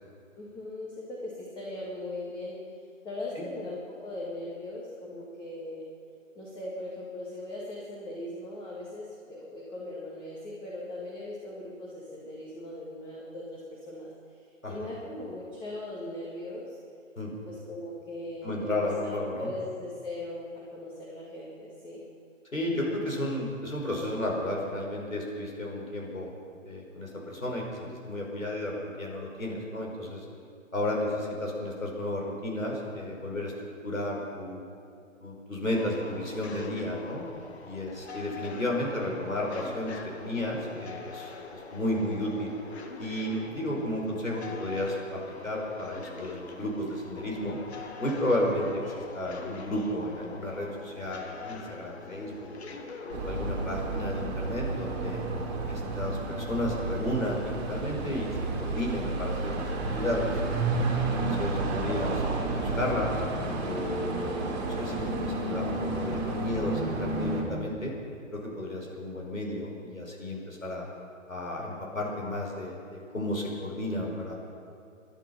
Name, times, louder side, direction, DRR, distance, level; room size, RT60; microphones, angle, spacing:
voice 1, 0.4-2.6 3.0-5.9 6.4-14.1 14.7-16.8 17.5-18.7 19.0-22.0, left 1 dB, 10° left, -5 dB, 1.8 m, -39 dB
voice 2, 18.4-19.5 22.5-26.3 26.7-30.3 30.7-33.5 33.8-34.6 35.2-37.2 37.6-42.5 43.0-47.6 48.0-52.9 53.2-55.2 55.7-59.5 59.9-60.4 61.0-63.2 63.7-67.9 68.3-70.9 71.3-74.3, left 1 dB, 80° left, -1 dB, 5.1 m, -33 dB
sound 1, 35.7-53.7, left 4 dB, 50° left, 1.9 m, -44 dB
sound 2, 53.1-67.4, right 2 dB, 30° right, 3.1 m, -31 dB
23.5 x 11.0 x 5.6 m, 2.5 s
figure-of-eight pair, 130°, 40 cm